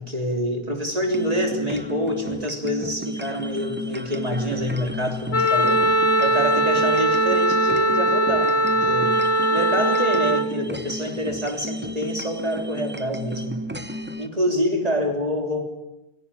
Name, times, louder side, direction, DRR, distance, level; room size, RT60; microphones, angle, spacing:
voice 1, 0.0-9.2 9.5-13.6 14.2-15.6, equal, 35° right, 2 dB, 3.5 m, -26 dB
sound 1, 1.1-14.3, equal, 10° right, 0.9 m, -33 dB
Wind instrument woodwind instrument, 5.3-10.5, right 1 dB, 75° left, 1.6 m, -20 dB
20.0 x 17.5 x 10.0 m, 0.99 s
omnidirectional pair, 1.1 m